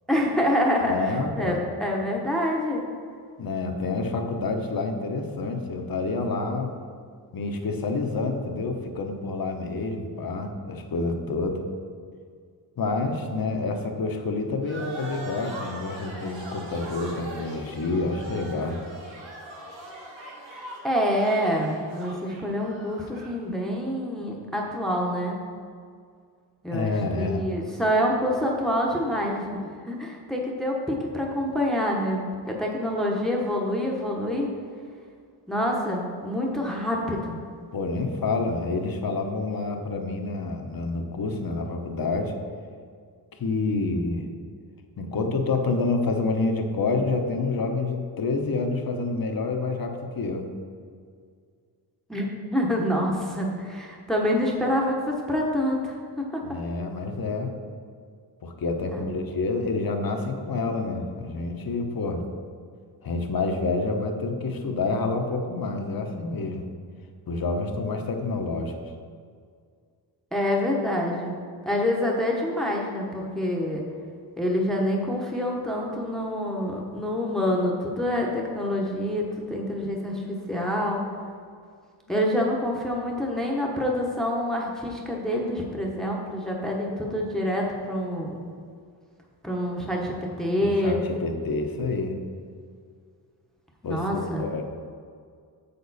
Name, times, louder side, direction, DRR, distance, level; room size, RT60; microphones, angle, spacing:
voice 1, 0.1-2.8 20.8-25.4 26.6-34.5 35.5-37.4 52.1-56.0 56.3-56.4 58.9-59.0 70.3-71.4 71.6-73.8 74.4-81.0 82.1-88.4 89.4-91.0 93.8-94.4, equal, ahead, -1 dB, 1.1 m, -26 dB
voice 2, 0.8-1.6 3.4-6.7 7.3-11.6 12.8-18.8 26.7-27.5 37.7-42.3 43.4-44.3 45.0-50.5 56.4-57.5 58.4-62.3 63.0-66.7 67.3-68.7 90.6-92.2 93.8-94.6, left 3 dB, 50° left, 4 dB, 1.1 m, -28 dB
sound 1, 14.6-23.4, right 1 dB, 85° right, 1.5 m, -40 dB
7.5 x 6.9 x 4.2 m, 2.1 s
cardioid pair, 85°, 44 cm